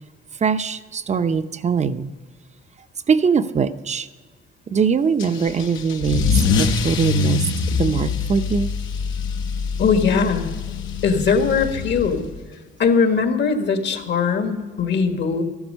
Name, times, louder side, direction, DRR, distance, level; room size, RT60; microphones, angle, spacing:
voice 1, 0.4-2.1 3.1-4.1 4.7-7.4 7.8-8.7, right 6 dB, 35° right, 0.7 m, -21 dB
Car / Engine starting / Accelerating revving vroom, 5.2-12.4, left 5 dB, 80° left, 1.0 m, -24 dB
voice 2, 9.8-10.5 11.0-12.2 12.8-15.4, left 5 dB, 60° left, 1.6 m, -20 dB
13.5 x 12.0 x 5.4 m
cardioid pair, 90°, 20 cm